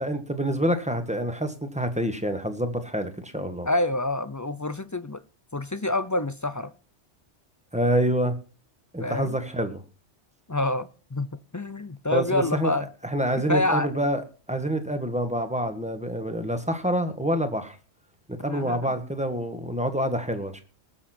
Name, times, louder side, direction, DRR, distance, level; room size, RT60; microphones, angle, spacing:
voice 1, 0.0-3.7 7.7-8.3 8.9-9.8 12.1-12.7 13.0-14.2 14.5-17.8 18.3-20.6, equal, 5° right, 1.5 m, -27 dB
voice 2, 3.7-5.2 5.5-6.7 9.0-9.4 10.5-11.3 11.5-12.9 13.5-13.9 18.4-18.9, left 2 dB, 25° left, 0.4 m, -27 dB
19.5 x 7.2 x 4.4 m
omnidirectional pair, 1.2 m